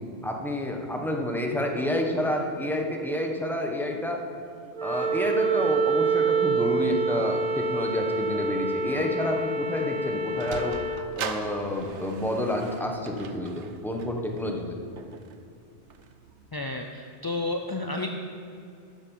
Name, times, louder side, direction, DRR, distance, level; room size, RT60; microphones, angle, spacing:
voice 1, 0.2-4.2 4.8-10.8 11.2-14.8, left 1 dB, ahead, 1 dB, 1.0 m, -29 dB
Wind instrument woodwind instrument, 4.7-11.1, right 4 dB, 45° right, 0.7 m, -27 dB
Sliding door, 10.2-16.5, right 6 dB, 75° right, 1.0 m, -41 dB
voice 2, 16.5-18.1, left 2 dB, 35° left, 3 dB, 0.4 m, -31 dB
11.5 x 8.7 x 5.5 m, 2.6 s
omnidirectional pair, 1.2 m